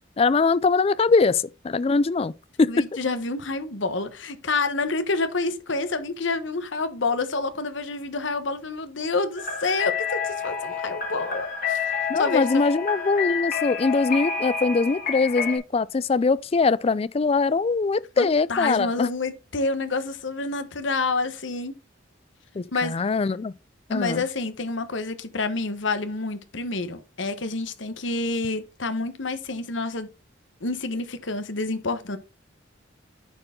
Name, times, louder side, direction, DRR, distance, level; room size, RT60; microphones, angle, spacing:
voice 1, 0.2-2.3 2.6-2.7 12.1-19.1 22.5-23.5 23.9-24.2, left 4 dB, 30° left, 0.3 m, -22 dB
voice 2, 2.7-11.8 12.1-12.7 18.2-21.7 22.7-22.9 23.9-30.1 30.6-32.2, left 3 dB, 70° left, 1.1 m, -28 dB
sound 1, 9.4-15.6, left 6 dB, 45° left, 1.9 m, -29 dB
9.7 x 4.6 x 3.7 m
head